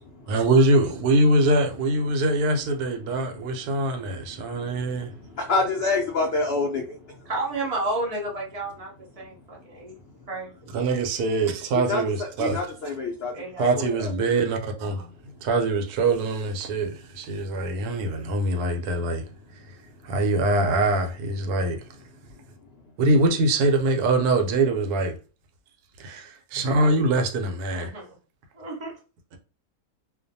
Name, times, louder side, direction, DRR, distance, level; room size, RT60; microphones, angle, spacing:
voice 1, 0.3-5.1 10.7-12.6 13.6-15.1 15.4-19.3 20.0-21.8 23.0-25.2 26.0-27.9, right 2 dB, 85° right, 1.1 m, -23 dB
voice 2, 5.4-6.9 11.8-12.0 12.4-13.3, left 3 dB, 85° left, 0.5 m, -25 dB
voice 3, 7.3-8.9 9.2-9.9 10.3-10.5 13.3-13.7 27.7-28.1 28.5-28.9, right 2 dB, 65° right, 0.3 m, -31 dB
2.5 x 2.2 x 2.6 m
omnidirectional pair, 1.6 m